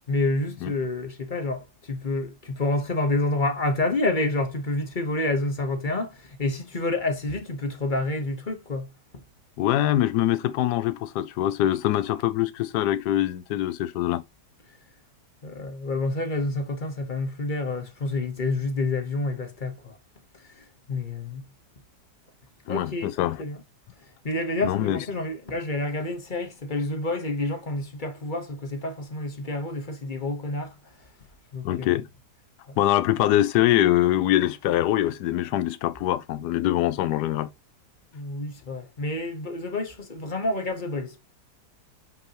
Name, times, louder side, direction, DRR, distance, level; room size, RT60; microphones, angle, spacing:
voice 1, 0.1-8.9 15.4-20.0 20.6-21.4 22.7-23.1 23.4-23.6 24.2-30.7 31.5-31.9 32.7-32.8 38.1-41.2, left 2 dB, 30° left, 1.2 m, -28 dB
voice 2, 9.6-14.2 22.7-23.4 24.6-25.0 31.6-32.0 32.8-37.5, left 13 dB, 80° left, 1.2 m, -23 dB
8.2 x 5.6 x 2.9 m
omnidirectional pair, 1.8 m